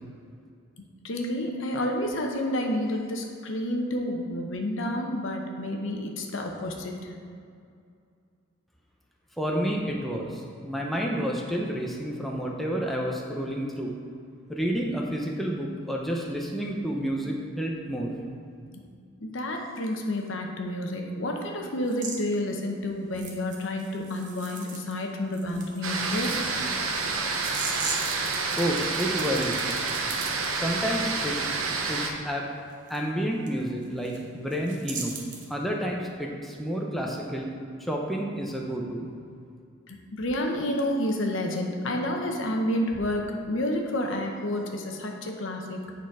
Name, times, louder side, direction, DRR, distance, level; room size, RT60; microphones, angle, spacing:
voice 1, 1.0-7.1 19.2-26.5 39.9-45.9, left 1 dB, 65° left, 2 dB, 0.9 m, -30 dB
voice 2, 9.4-13.9 14.5-18.1 28.6-29.7 30.5-31.4 31.9-32.5 32.9-35.2 35.5-37.5 37.8-39.1, equal, ahead, -2 dB, 0.6 m, -30 dB
sound 1, 21.9-22.2 23.1-25.0 25.3-30.5 32.9-33.0 33.5-33.6 33.8-34.2 34.5-35.5, right 5 dB, 40° right, 0.9 m, -38 dB
sound 2, 25.8-32.1, right 4 dB, 75° right, 0.8 m, -29 dB
9.0 x 4.1 x 4.7 m, 2.4 s
head